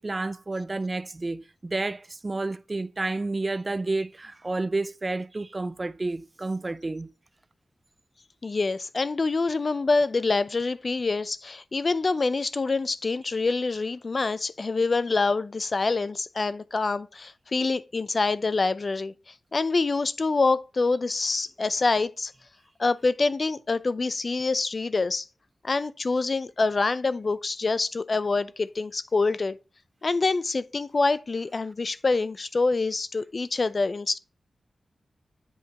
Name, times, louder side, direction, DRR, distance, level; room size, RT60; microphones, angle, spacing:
voice 1, 0.0-7.1, right 2 dB, 35° right, 0.3 m, -30 dB
voice 2, 8.4-19.1 19.5-22.3 22.8-25.3 25.6-29.6 30.0-34.2, left 3 dB, 45° left, 0.5 m, -26 dB
8.2 x 4.9 x 2.8 m
wide cardioid pair, 75°, 0 cm